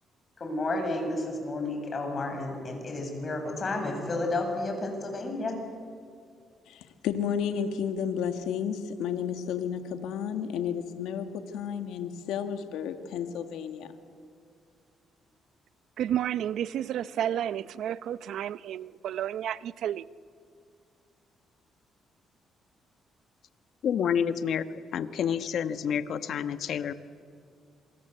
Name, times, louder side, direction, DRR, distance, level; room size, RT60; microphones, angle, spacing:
voice 1, 0.4-5.6, left 2 dB, 40° left, 7.3 m, -31 dB
voice 2, 6.7-11.3 11.5-13.9, left 8 dB, 90° left, 1.8 m, -32 dB
voice 3, 16.0-20.1, right 10 dB, 75° right, 0.7 m, -31 dB
voice 4, 23.8-24.7 24.9-26.9, left 8 dB, 70° left, 1.3 m, -28 dB
27.0 x 25.0 x 8.1 m
cardioid pair, 90°, 0 cm